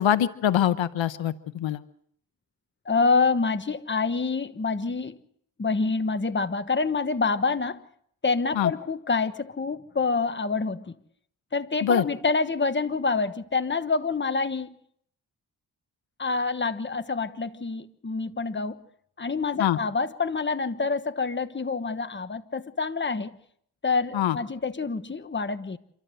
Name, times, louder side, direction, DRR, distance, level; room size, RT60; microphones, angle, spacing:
voice 1, 0.0-1.8 8.6-8.7 11.8-12.0 19.6-19.8 24.1-24.4, left 10 dB, 85° left, 13 dB, 1.0 m, -24 dB
voice 2, 2.8-5.2 5.6-7.8 8.2-10.9 11.5-14.8 16.2-18.8 19.2-23.3 23.8-25.8, left 4 dB, 25° left, 9 dB, 1.2 m, -27 dB
27.0 x 13.0 x 7.8 m, 0.68 s
cardioid pair, 60°, 44 cm